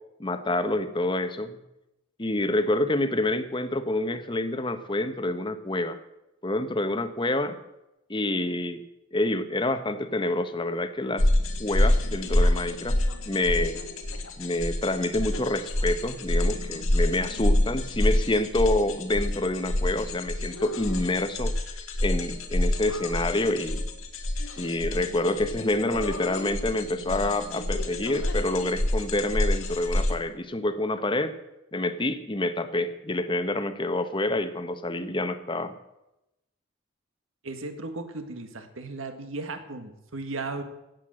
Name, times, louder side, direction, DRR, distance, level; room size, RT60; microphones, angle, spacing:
voice 1, 0.2-1.6 2.2-6.0 6.4-7.6 8.1-8.8 9.1-11.3 11.6-13.0 13.3-13.8 14.4-21.5 22.0-23.8 24.6-31.3 31.7-35.7, left 2 dB, 25° left, 10 dB, 0.9 m, -27 dB
sound 1, 11.2-30.1, left 1 dB, 85° left, 1.8 m, -27 dB
voice 2, 37.4-40.6, right 3 dB, 75° right, 8 dB, 1.7 m, -36 dB
16.5 x 8.1 x 7.7 m, 0.91 s
head